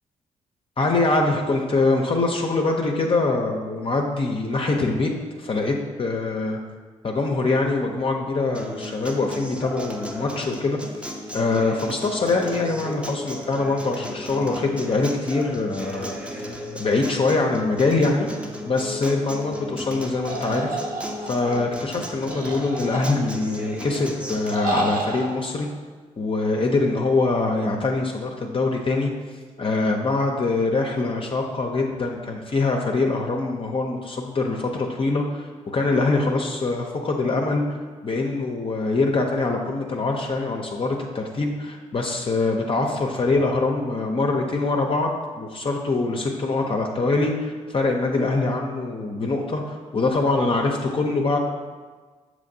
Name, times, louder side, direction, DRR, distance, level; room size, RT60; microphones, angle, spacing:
voice 1, 0.8-6.6 7.0-10.8 11.3-16.4 16.8-18.3 18.6-20.8 21.3-25.7 26.2-29.1 29.6-37.6 38.0-51.4, left 3 dB, 35° left, 1 dB, 0.5 m, -24 dB
Acoustic guitar, 8.5-24.6, left 1 dB, 5° right, 0.6 m, -35 dB
sound 1, 20.3-21.6 22.3-23.4 24.5-25.3, right 2 dB, 60° right, 1.0 m, -29 dB
6.4 x 3.0 x 2.6 m, 1.5 s
hypercardioid pair, 45°, 16 cm